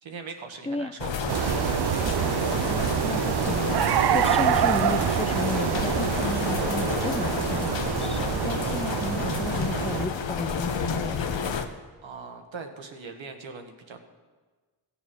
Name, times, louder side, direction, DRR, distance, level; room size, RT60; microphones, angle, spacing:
voice 1, 0.0-2.6 12.0-14.0, right 4 dB, 80° right, 5 dB, 1.5 m, -42 dB
sound 1, 1.0-11.7, left 6 dB, 70° left, 1.0 m, -30 dB
sound 2, 1.3-10.1, right 10 dB, 60° right, 0.6 m, -26 dB
voice 2, 2.7-3.7 4.0-11.5, left 3 dB, 15° left, 13 dB, 0.5 m, -34 dB
15.5 x 7.2 x 6.1 m, 1.4 s
cardioid pair, 60°, 46 cm